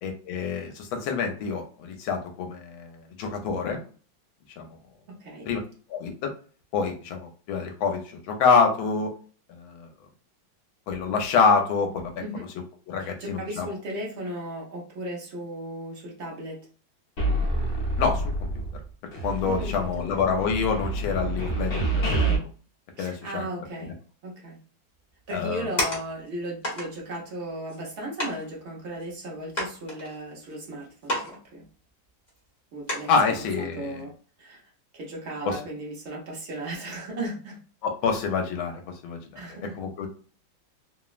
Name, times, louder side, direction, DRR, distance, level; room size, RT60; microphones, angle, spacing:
voice 1, 0.0-3.8 4.6-4.8 5.5-5.6 5.9-6.3 6.7-9.1 9.5-9.9 10.9-12.1 12.9-13.7 18.0-18.5 19.2-22.3 23.0-23.4 25.3-25.7 33.1-34.0 35.4-35.6 37.8-39.4 39.8-40.1, left 5 dB, 85° left, 3 dB, 1.4 m, -26 dB
voice 2, 13.0-16.6 19.4-20.1 23.0-23.9 24.2-24.6 25.3-31.6 32.7-33.1 33.4-34.1 34.4-34.6 34.9-37.6 39.3-39.8, right 1 dB, 75° right, -3 dB, 0.6 m, -36 dB
sound 1, 17.2-18.8 19.1-22.4, right 2 dB, 60° left, 1.0 m, -27 dB
sound 2, 25.3-26.3 26.6-26.9 27.7-27.8 28.2-28.4 29.0-29.1 29.5-30.5 31.0-31.4 31.6-31.7 32.3-32.4 32.9-33.3 33.8-34.0, equal, 30° left, 0.8 m, -31 dB
3.4 x 2.0 x 2.3 m, 0.40 s
omnidirectional pair, 2.2 m